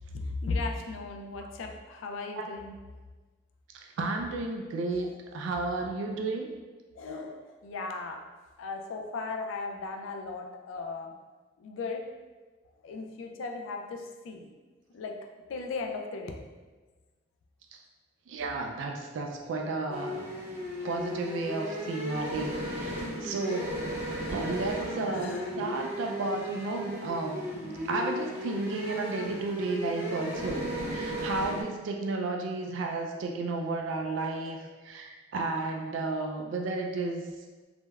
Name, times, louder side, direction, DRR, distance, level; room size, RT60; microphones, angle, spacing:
voice 1, 0.1-2.8 4.9-5.1 7.0-8.2 8.6-11.2 11.6-12.1 12.8-14.5 14.9-16.4 24.7-25.5 34.4-34.6, left 3 dB, 85° left, 3 dB, 0.3 m, -37 dB
voice 2, 3.7-6.5 18.3-20.3 20.8-23.9 24.3-27.4 27.9-37.2, right 3 dB, 75° right, 2 dB, 0.3 m, -33 dB
sound 1, 19.9-31.6, equal, 10° right, 0.6 m, -35 dB
3.2 x 2.1 x 2.2 m, 1.3 s
head